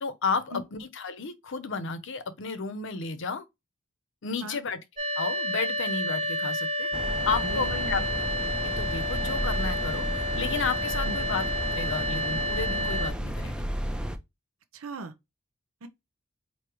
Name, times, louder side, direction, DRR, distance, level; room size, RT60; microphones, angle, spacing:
voice 1, 0.0-3.5 4.2-4.8 5.2-8.0 8.6-11.5 11.7-13.7, left 5 dB, 65° left, 0.7 m, -32 dB
sound 1, 5.0-13.1, equal, 35° right, 1.0 m, -30 dB
sound 2, 6.9-14.2, equal, 5° right, 0.4 m, -32 dB
voice 2, 7.4-8.1 11.0-11.2 14.7-15.1 15.8-15.9, right 1 dB, 80° right, 0.6 m, -38 dB
4.8 x 2.7 x 3.0 m
head